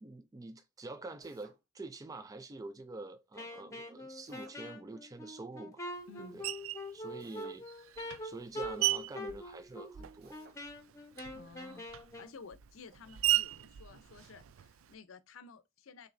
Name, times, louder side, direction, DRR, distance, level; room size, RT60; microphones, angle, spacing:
voice 1, 0.0-5.8 6.3-6.4 6.9-7.7 8.2-10.4, right 2 dB, 20° right, 0.3 m, -46 dB
Drill, 1.2-1.6 4.2-4.6 7.2-7.6 10.2-10.6, right 4 dB, 50° right, 0.7 m, -60 dB
Wind instrument woodwind instrument, 3.3-12.4, left 1 dB, 15° left, 0.9 m, -44 dB
voice 2, 6.1-6.4 11.3-16.1, left 4 dB, 85° left, 0.6 m, -53 dB
Screech, 6.4-6.9 7.7-10.4 10.6-14.9, right 15 dB, 90° right, 0.4 m, -36 dB
6.3 x 2.7 x 2.6 m
head